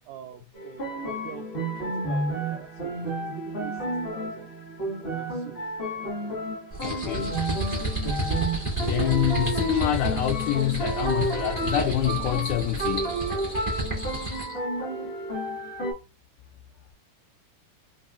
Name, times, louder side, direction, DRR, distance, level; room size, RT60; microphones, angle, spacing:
voice 1, 0.1-3.0 3.4-5.7, right 9 dB, 80° right, 1.7 m, -45 dB
sound 1, 0.5-15.9, right 1 dB, 40° left, 0.9 m, -31 dB
sound 2, 6.7-14.6, right 2 dB, 25° right, 0.4 m, -31 dB
voice 2, 6.8-7.3 8.8-13.2, left 13 dB, 80° left, 1.9 m, -26 dB
5.4 x 2.1 x 2.4 m
omnidirectional pair, 3.7 m